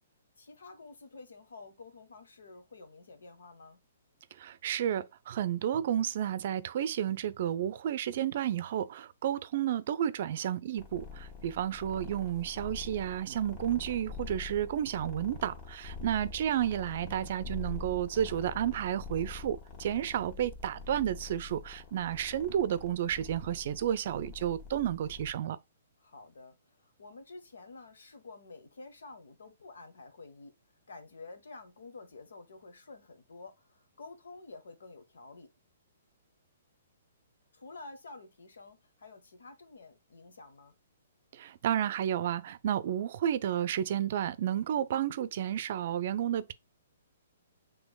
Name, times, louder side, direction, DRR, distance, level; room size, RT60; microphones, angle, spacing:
voice 1, 0.4-3.8 16.3-16.7 26.0-30.5 30.9-35.5 37.5-40.8, left 3 dB, 80° left, 1.2 m, -50 dB
voice 2, 4.3-25.6 41.3-46.5, right 10 dB, 55° right, 0.5 m, -31 dB
sound 1, 10.8-25.3, left 4 dB, 30° left, 1.4 m, -45 dB
6.1 x 3.3 x 2.3 m
hypercardioid pair, 140°, 0 cm